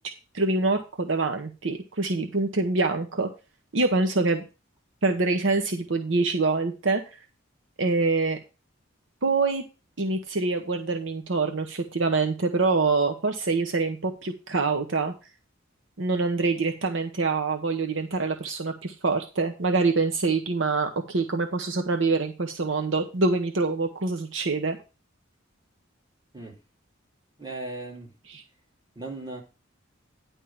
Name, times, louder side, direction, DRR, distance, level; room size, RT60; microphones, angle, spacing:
voice 1, 0.3-3.3 3.7-4.4 5.0-7.0 7.8-8.4 9.2-9.6 10.0-15.1 16.0-24.8, right 3 dB, 65° right, 0.9 m, -25 dB
voice 2, 27.4-28.1 28.9-29.4, right 2 dB, 20° right, 3.1 m, -37 dB
10.0 x 3.6 x 7.1 m
head